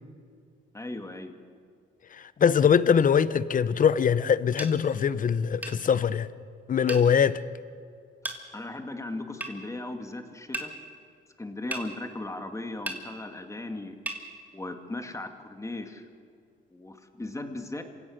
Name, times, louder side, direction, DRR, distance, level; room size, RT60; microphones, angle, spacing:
voice 1, 0.7-1.3 8.5-10.7 11.4-13.9 14.5-16.1 16.7-17.8, left 2 dB, 15° left, 2.2 m, -37 dB
voice 2, 2.4-6.3 6.7-7.4, left 7 dB, 40° left, 0.8 m, -22 dB
sound 1, 4.6-4.7 5.6-5.8 6.9-7.1 8.2-8.4 9.4-9.5 10.5-10.7 11.7-11.9 12.9-13.0 14.1-14.2, right 1 dB, 10° right, 2.8 m, -34 dB
27.0 x 16.5 x 6.6 m
cardioid pair, 90°, 20 cm